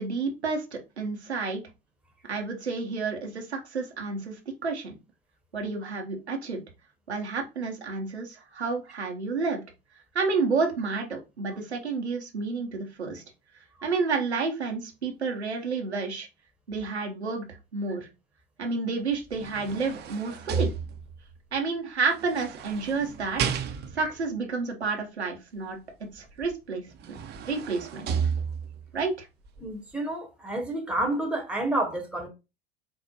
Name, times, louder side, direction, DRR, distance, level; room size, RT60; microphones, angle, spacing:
voice 1, 0.0-1.6 2.3-5.0 5.5-6.6 7.1-9.6 10.1-13.2 13.8-16.3 16.7-17.5 17.7-18.1 18.6-20.7 21.5-23.4 23.9-27.2 27.5-28.1 28.9-29.3, right 4 dB, 90° right, 0.8 m, -30 dB
sound 1, 19.1-21.3 22.2-24.2 26.4-26.5 26.9-28.9 29.5-29.6, right 6 dB, 30° right, 0.5 m, -32 dB
voice 2, 29.6-32.3, right 1 dB, 5° right, 0.9 m, -29 dB
4.3 x 2.0 x 2.8 m
figure-of-eight pair, 80°, 32 cm